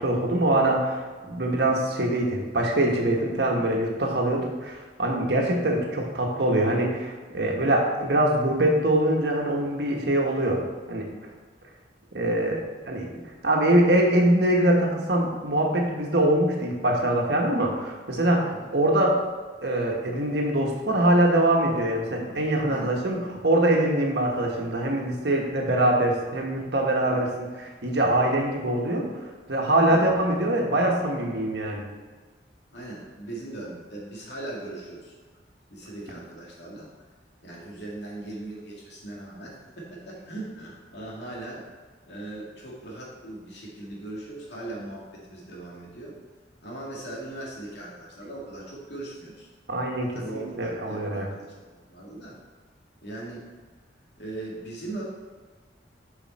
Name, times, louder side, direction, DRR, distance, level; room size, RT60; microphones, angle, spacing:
voice 1, 0.0-10.6 10.9-11.1 12.1-12.6 12.9-13.1 13.4-19.2 19.6-31.8 49.7-51.3, right 1 dB, 70° right, 0 dB, 1.4 m, -23 dB
voice 2, 32.7-35.1 35.7-36.9 37.4-41.6 42.1-46.2 46.6-49.5 50.1-52.4 53.0-53.5 54.2-55.0, right 2 dB, 75° left, -4 dB, 2.3 m, -39 dB
7.6 x 5.6 x 4.2 m, 1.4 s
head